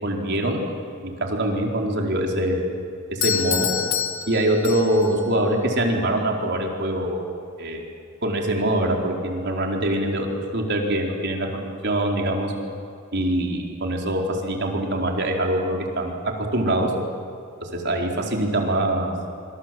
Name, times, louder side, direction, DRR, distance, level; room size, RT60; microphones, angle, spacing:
voice 1, 0.0-0.6 1.2-2.7 3.1-3.7 4.3-7.2 7.6-7.8 8.2-10.3 10.5-11.5 11.8-12.5 13.1-16.9 17.6-19.1, right 1 dB, 55° right, 1 dB, 4.3 m, -23 dB
Doorbell, 3.2-5.2, left 9 dB, 70° left, 1.9 m, -27 dB
27.0 x 25.0 x 7.8 m, 2.6 s
head